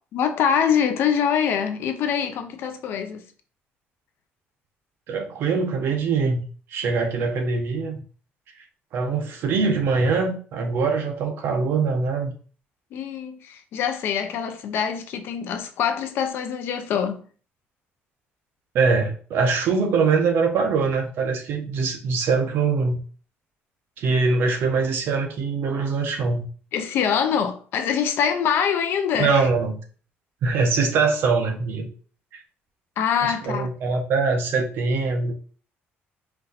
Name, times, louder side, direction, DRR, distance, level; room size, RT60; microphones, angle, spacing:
voice 1, 0.1-3.2 12.9-17.2 26.7-29.5 33.0-33.7, left 7 dB, 60° left, 0.6 m, -24 dB
voice 2, 5.1-6.4 6.7-8.0 8.9-12.3 18.7-23.0 24.0-26.4 29.2-29.8 30.4-31.9 32.3-32.4 33.2-35.3, right 4 dB, 60° right, 0.9 m, -23 dB
4.4 x 2.6 x 4.0 m
cardioid pair, 170°, 4 cm